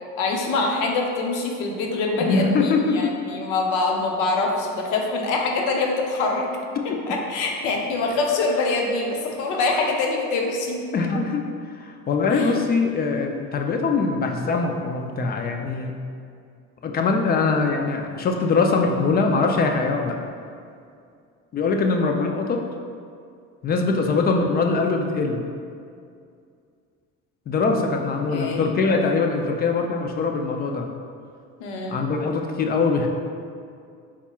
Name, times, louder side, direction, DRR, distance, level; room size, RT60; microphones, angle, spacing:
voice 1, 0.0-6.5 7.1-10.8 12.3-12.5 28.3-28.7 31.6-32.0, left 3 dB, 70° left, 1 dB, 0.7 m, -24 dB
voice 2, 2.2-3.2 6.8-7.0 10.9-15.9 16.8-20.2 21.5-22.6 23.6-25.4 27.5-30.9 31.9-33.1, left 4 dB, 30° left, 3 dB, 0.4 m, -22 dB
4.1 x 3.6 x 2.3 m, 2.3 s
supercardioid pair, 90°, 32 cm